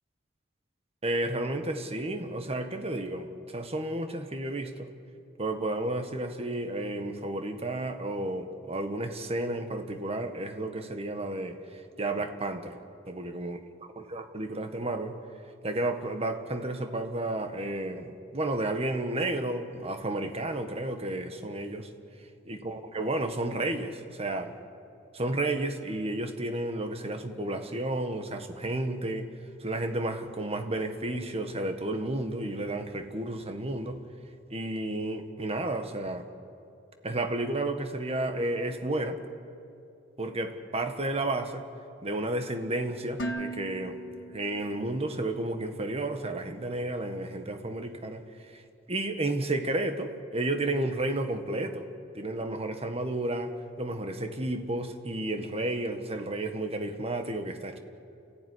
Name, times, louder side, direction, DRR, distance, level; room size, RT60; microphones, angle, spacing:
voice 1, 1.0-4.9 5.4-12.8 13.1-13.6 14.0-15.2 15.6-21.9 22.4-24.5 25.1-29.3 29.6-34.0 34.5-36.3 37.0-39.2 40.2-41.6 42.0-48.6 48.9-51.9 52.1-57.8, right 2 dB, 35° right, 7 dB, 1.6 m, -32 dB
Dishes pots and pans, 43.2-45.3, right 2 dB, 80° left, 1.6 m, -38 dB
29.0 x 15.0 x 9.8 m, 2.7 s
head